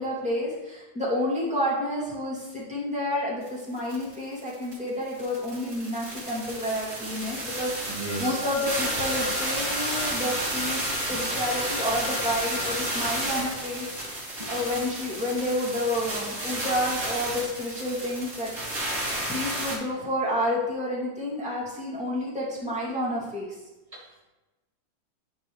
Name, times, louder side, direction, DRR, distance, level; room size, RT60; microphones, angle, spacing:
voice 1, 0.0-18.5 19.3-23.6, left 1 dB, ahead, -8 dB, 1.9 m, -30 dB
sound 1, 3.5-3.6 3.8-19.8, right 1 dB, 25° right, 2.7 m, -32 dB
voice 2, 7.9-8.4 14.4-14.5 23.9-24.2, right 2 dB, 50° right, -7 dB, 0.4 m, -36 dB
sound 2, 8.1-13.3, left 4 dB, 75° left, 2.5 m, -39 dB
12.5 x 4.8 x 3.3 m, 1.1 s
omnidirectional pair, 3.7 m